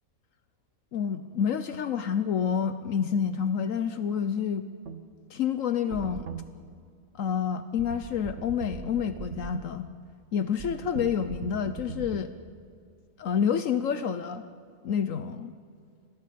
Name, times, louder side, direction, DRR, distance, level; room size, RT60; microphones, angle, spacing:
voice 1, 0.9-4.6 5.3-6.3 7.1-9.9 10.3-12.3 13.2-14.4 14.8-15.5, left 7 dB, 70° left, 11 dB, 1.1 m, -28 dB
sound 1, 4.9-5.0 5.9-6.5 7.8-9.6 10.6-12.2, right 7 dB, 60° right, 1.4 m, -40 dB
26.5 x 17.0 x 8.4 m, 2.3 s
omnidirectional pair, 1.5 m